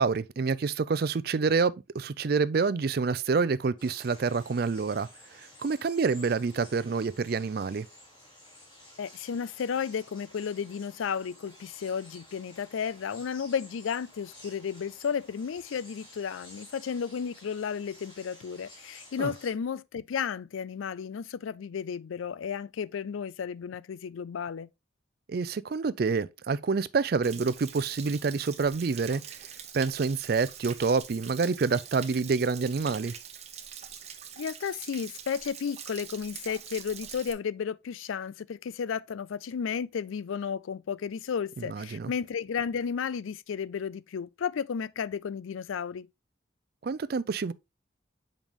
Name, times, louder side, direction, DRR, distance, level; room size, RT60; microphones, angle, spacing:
voice 1, 0.0-5.1 5.3-7.9 19.2-19.3 25.3-29.2 29.7-33.1 41.6-42.1 46.8-47.5, right 4 dB, 50° right, 0.4 m, -27 dB
sound 1, 3.8-19.5, left 1 dB, 25° left, 3.0 m, -53 dB
voice 2, 9.0-24.7 34.4-46.1, left 7 dB, 85° left, 0.4 m, -33 dB
Stream / Splash splatter / Trickle dribble, 27.2-37.3, right 8 dB, 35° right, 0.8 m, -44 dB
7.3 x 5.1 x 3.0 m
head